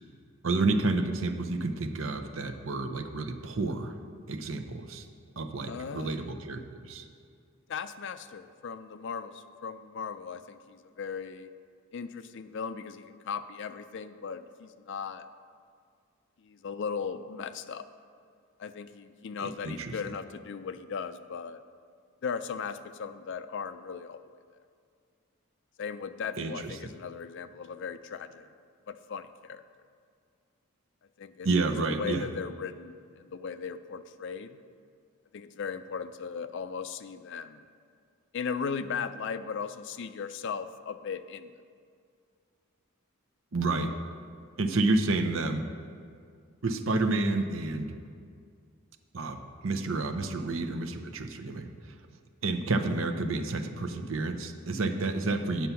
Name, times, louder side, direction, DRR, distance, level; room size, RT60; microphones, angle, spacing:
voice 1, 0.4-3.9 4.3-5.1 5.4-7.0 19.4-19.9 26.4-26.8 31.4-32.3 43.5-43.9 44.6-45.7 46.6-48.0 49.1-51.7 52.4-55.7, right 3 dB, 65° right, 7 dB, 0.7 m, -30 dB
voice 2, 5.7-6.2 7.7-11.5 11.9-15.3 16.4-17.9 18.6-21.6 22.2-24.4 25.8-28.5 28.9-29.6 31.2-31.5 31.9-34.6 35.3-37.7 38.3-41.5, left 6 dB, 55° left, 11 dB, 0.4 m, -37 dB
9.4 x 7.0 x 5.7 m, 2.2 s
head